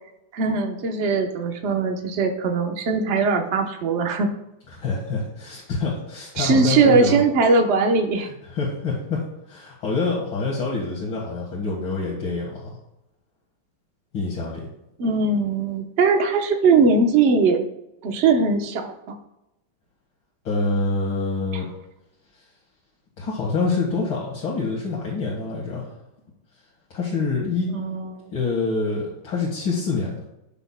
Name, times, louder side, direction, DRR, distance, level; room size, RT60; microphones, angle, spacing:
voice 1, 0.3-4.3 6.4-8.3 15.0-17.7 18.0-19.1 21.5-21.6 27.7-28.3, right 4 dB, 45° right, 4 dB, 0.9 m, -20 dB
voice 2, 4.7-7.2 8.2-12.8 14.1-14.7 20.4-21.7 23.2-25.9 26.9-27.7 28.3-30.2, left 3 dB, 75° left, -5 dB, 2.4 m, -26 dB
13.0 x 5.9 x 2.2 m, 0.88 s
omnidirectional pair, 2.2 m